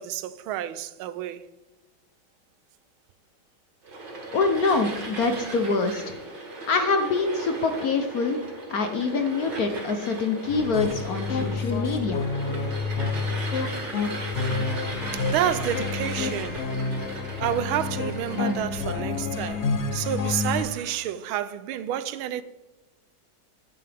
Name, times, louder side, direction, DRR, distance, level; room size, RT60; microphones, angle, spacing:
voice 1, 0.0-1.4 15.1-16.7 17.4-22.4, right 11 dB, 85° right, 1.4 m, -29 dB
sound 1, 3.8-21.1, right 2 dB, 60° right, 2.8 m, -38 dB
voice 2, 4.3-6.2 6.7-8.4 8.7-12.2, left 4 dB, 60° left, 1.0 m, -25 dB
sound 2, 10.5-20.6, left 4 dB, 90° left, 0.6 m, -29 dB
9.6 x 8.7 x 3.4 m
omnidirectional pair, 2.3 m